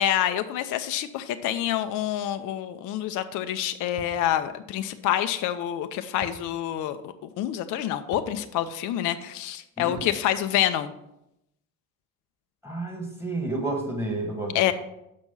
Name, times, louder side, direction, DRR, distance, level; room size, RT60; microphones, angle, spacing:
voice 1, 0.0-10.9 14.5-14.7, left 11 dB, 40° left, 9 dB, 0.6 m, -27 dB
sound 1, 4.0-4.3 6.2-6.5 6.8-6.9 8.1-8.4 10.0-10.3, right 5 dB, 30° right, 1.0 m, -44 dB
voice 2, 12.6-14.7, right 2 dB, 5° right, 2 dB, 1.9 m, -31 dB
6.1 x 5.2 x 5.6 m, 0.84 s
hypercardioid pair, 65°, 50 cm